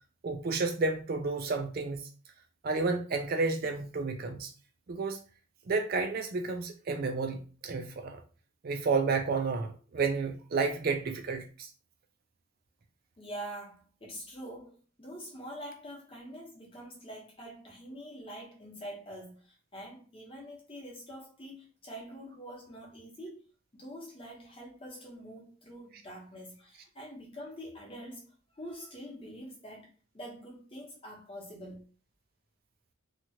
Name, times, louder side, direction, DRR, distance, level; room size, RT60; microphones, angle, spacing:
voice 1, 0.2-2.0 2.6-4.5 4.9-5.2 5.7-8.2 8.6-11.7, right 4 dB, 45° right, 0.4 m, -31 dB
voice 2, 13.2-28.3 28.5-29.9 30.1-31.8, equal, 25° left, 0.9 m, -45 dB
2.9 x 2.4 x 2.8 m
head